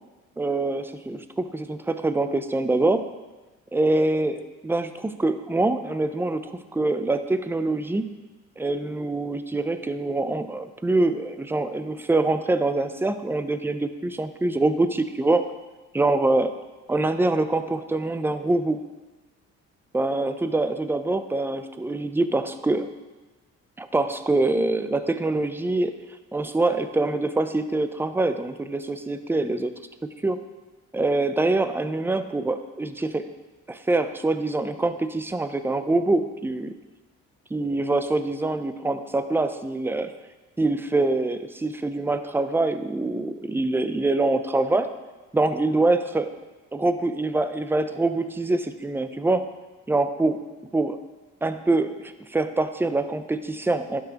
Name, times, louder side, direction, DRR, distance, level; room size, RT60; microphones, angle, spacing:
voice 1, 0.4-3.1 3.7-8.1 8.6-15.5 15.9-16.5 16.9-18.8 19.9-22.9 23.8-25.9 26.3-29.7 30.0-30.4 30.9-33.3 33.7-36.8 37.5-40.1 40.6-44.9 45.3-46.3 46.7-49.5 49.9-50.4 50.7-51.0 51.4-54.0, right 2 dB, 10° right, 10 dB, 0.5 m, -24 dB
11.5 x 6.2 x 2.9 m, 1.2 s
cardioid pair, 90°, 30 cm